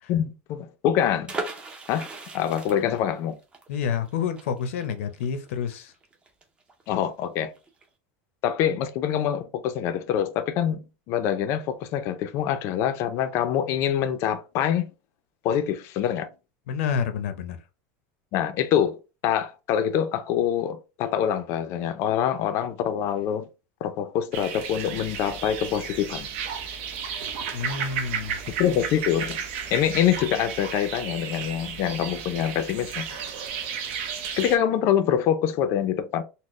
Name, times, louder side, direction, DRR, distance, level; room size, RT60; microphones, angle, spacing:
voice 1, 0.1-1.3 1.9-2.1 2.3-3.4 6.9-7.5 8.4-14.9 15.4-16.3 18.3-23.5 23.8-26.3 28.6-29.4 29.7-33.2 34.4-36.2, left 9 dB, 40° left, 0.4 m, -25 dB
sound 1, 1.3-6.9 7.2-7.3 7.6-7.9, right 3 dB, 15° right, 0.5 m, -38 dB
voice 2, 3.7-5.9 16.7-17.6 27.5-28.4, left 7 dB, 85° left, 0.7 m, -29 dB
sound 2, 24.3-34.6, right 7 dB, 65° right, 0.7 m, -33 dB
4.2 x 2.1 x 3.1 m
supercardioid pair, 165°, 7 cm